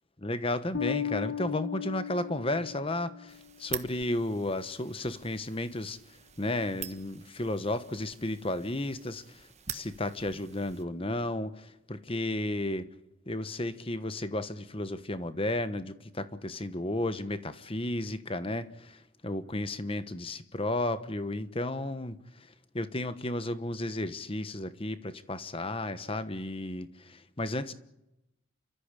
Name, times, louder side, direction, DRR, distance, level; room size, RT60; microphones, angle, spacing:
voice 1, 0.2-12.9 13.3-27.7, left 1 dB, 25° left, 12 dB, 1.1 m, -33 dB
Bass guitar, 0.7-3.4, left 8 dB, 55° left, 1.2 m, -35 dB
sound 1, 3.3-10.8, right 9 dB, 30° right, 1.3 m, -45 dB
30.0 x 14.0 x 8.3 m, 0.90 s
head